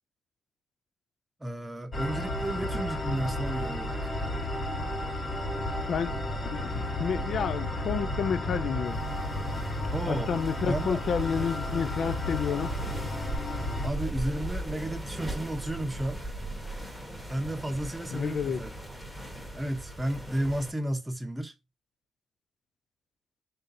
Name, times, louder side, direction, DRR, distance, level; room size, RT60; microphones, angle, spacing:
voice 1, 1.4-4.1 9.9-10.3 10.7-11.0 13.8-16.3 16.7-16.9 17.3-18.7 19.5-21.5, right 1 dB, 10° right, 0.8 m, -32 dB
sound 1, 1.9-13.9, left 1 dB, 30° left, 1.2 m, -32 dB
voice 2, 5.9-6.2 6.4-9.0 10.1-12.7 18.1-18.6, left 7 dB, 60° left, 0.3 m, -30 dB
sound 2, 8.8-20.7, right 1 dB, 5° left, 1.2 m, -39 dB
3.6 x 2.7 x 4.0 m
cardioid pair, 90°, 0 cm